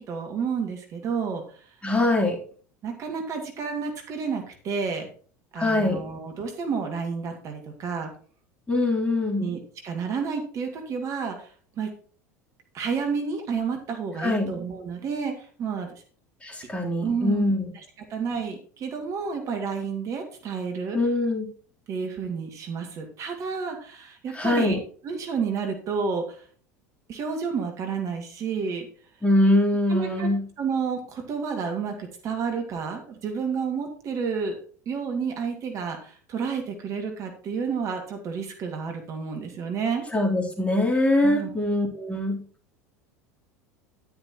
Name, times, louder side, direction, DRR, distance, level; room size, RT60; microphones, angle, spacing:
voice 1, 0.0-1.8 2.8-5.1 5.5-8.1 9.4-11.9 12.7-15.9 17.0-21.0 21.9-24.8 25.0-26.5 27.1-28.9 29.9-30.3 30.6-34.6 34.9-40.0 41.2-41.5, right 5 dB, 40° right, 4 dB, 2.2 m, -30 dB
voice 2, 1.8-2.4 5.6-6.0 8.7-9.5 14.2-14.5 16.4-17.6 20.9-21.5 24.3-24.8 29.2-30.4 40.1-42.4, left 1 dB, 15° left, -1 dB, 3.5 m, -23 dB
11.0 x 10.0 x 3.0 m, 0.43 s
figure-of-eight pair, 75°, 8 cm